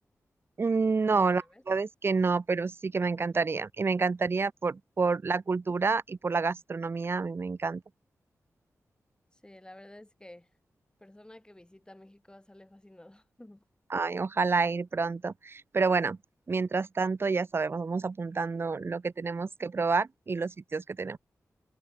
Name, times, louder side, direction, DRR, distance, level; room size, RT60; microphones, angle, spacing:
voice 1, 0.6-7.8 13.9-16.2 16.5-21.2, right 4 dB, 40° right, 0.4 m, -29 dB
voice 2, 1.1-1.6 9.3-10.5 11.0-13.6, left 1 dB, 15° left, 2.7 m, -52 dB
cardioid pair, 50°, 6 cm